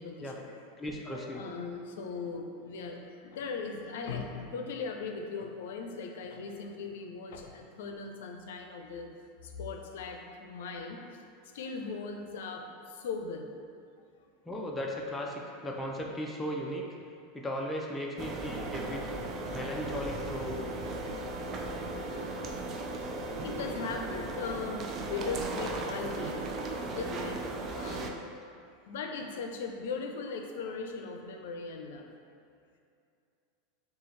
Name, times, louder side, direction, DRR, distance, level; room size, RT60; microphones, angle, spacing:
voice 1, 0.0-0.6 1.0-9.1 9.4-11.1 11.5-12.6 13.0-13.5 20.8-21.2 21.5-21.6 22.1-22.5 23.4-26.4 26.9-28.1 28.9-32.1, left 4 dB, 75° left, 3 dB, 0.5 m, -39 dB
voice 2, 0.8-1.4 14.5-16.8 17.3-19.0 19.5-20.6 21.9-22.0, equal, 10° left, -2 dB, 0.5 m, -36 dB
sound 1, 18.2-28.1, right 2 dB, 35° right, 0.5 m, -36 dB
6.8 x 2.4 x 3.2 m, 2.5 s
supercardioid pair, 115°, 0 cm